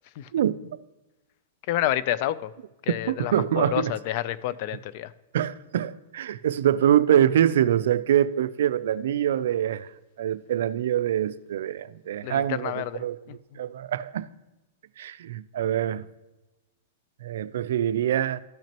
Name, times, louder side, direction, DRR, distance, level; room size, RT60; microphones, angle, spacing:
voice 1, 0.3-0.6 3.1-3.9 5.3-9.9 10.2-12.7 13.0-13.1 13.6-14.3 15.0-16.1 17.2-18.4, right 10 dB, 75° right, 0.4 m, -24 dB
voice 2, 1.7-2.5 2.8-5.1 12.2-13.6, left 13 dB, 45° left, 0.3 m, -29 dB
13.0 x 6.0 x 2.9 m
supercardioid pair, 150°, 0 cm